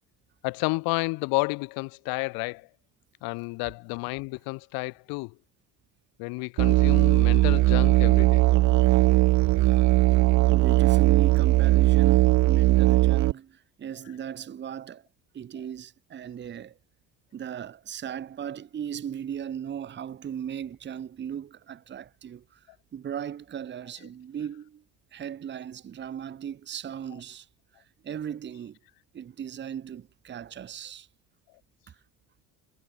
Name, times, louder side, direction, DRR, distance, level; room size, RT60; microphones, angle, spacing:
voice 1, 0.4-2.7 3.2-5.3 6.2-8.4, left 28 dB, 75° left, 0.6 m, -31 dB
Musical instrument, 6.6-13.3, right 17 dB, 50° right, 0.6 m, -19 dB
voice 2, 10.5-15.1 15.3-16.8 17.3-22.6 22.9-24.8 25.1-27.5 28.0-28.8 29.1-31.1 31.9-32.0, right 9 dB, 30° right, 1.1 m, -37 dB
cardioid pair, 120°, 37 cm